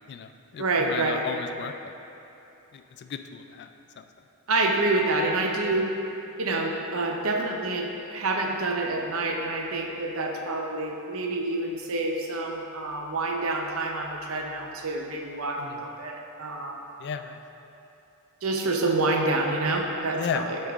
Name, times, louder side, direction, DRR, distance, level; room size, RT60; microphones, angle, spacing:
voice 1, 0.1-2.0 2.7-4.0 15.6-15.8 17.0-17.4 20.1-20.5, left 7 dB, 50° left, 8 dB, 0.3 m, -35 dB
voice 2, 0.6-1.2 4.5-5.9 6.4-16.8 18.4-20.6, right 2 dB, 65° right, 2 dB, 0.7 m, -27 dB
8.5 x 5.4 x 3.5 m, 3.0 s
head